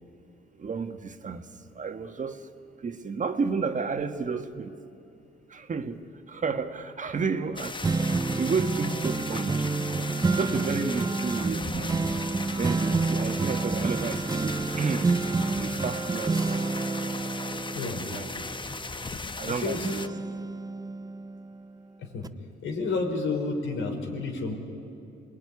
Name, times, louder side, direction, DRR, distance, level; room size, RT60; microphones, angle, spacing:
voice 1, 0.6-1.4 1.8-2.4 2.8-4.7 5.5-6.0 6.3-7.7 8.3-9.6 10.3-12.0 12.6-15.1 15.6-18.3 19.4-20.1, right 5 dB, 40° right, 7 dB, 1.7 m, -32 dB
sound 1, 7.6-20.1, left 3 dB, 25° left, 1.1 m, -37 dB
sound 2, 7.8-19.5 19.8-21.7 22.2-22.3, right 3 dB, 20° right, 0.6 m, -29 dB
voice 2, 19.5-20.1 22.0-22.2 22.6-24.5, left 3 dB, 80° left, 2 dB, 5.0 m, -30 dB
27.0 x 21.0 x 9.8 m, 2.8 s
cardioid pair, 90°, 20 cm